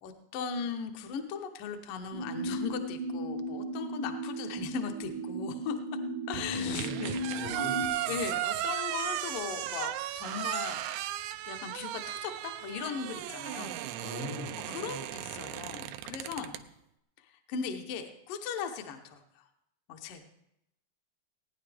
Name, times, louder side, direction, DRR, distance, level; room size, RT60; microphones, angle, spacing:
voice 1, 0.0-5.8 6.3-7.7 8.1-10.8 11.5-14.3 14.7-16.6 17.2-19.4 19.9-20.2, left 6 dB, 70° left, 5 dB, 2.2 m, -38 dB
sound 1, 2.1-7.9, right 1 dB, 55° left, 1.0 m, -36 dB
sound 2, 6.3-16.6, right 13 dB, 90° right, 2.8 m, -36 dB
voice 2, 6.5-8.1 14.0-14.8, left 2 dB, 85° left, -3 dB, 4.9 m, -41 dB
sound 3, 6.5-10.7 11.1-11.2 11.7-11.8, right 6 dB, 70° right, 1.7 m, -49 dB
18.5 x 9.8 x 3.4 m, 0.80 s
omnidirectional pair, 4.7 m